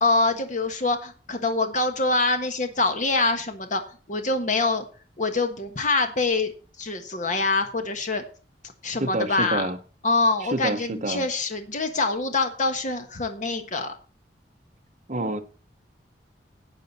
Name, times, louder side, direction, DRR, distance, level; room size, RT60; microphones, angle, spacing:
voice 1, 0.0-3.8 4.1-4.8 5.2-6.5 6.8-8.2 8.8-9.7 10.0-13.9 15.2-15.3, left 3 dB, 45° left, 6 dB, 1.5 m, -25 dB
voice 2, 9.0-9.8 10.4-11.3 15.1-15.4, right 2 dB, 45° right, 9 dB, 1.1 m, -27 dB
12.0 x 8.9 x 4.2 m, 0.38 s
head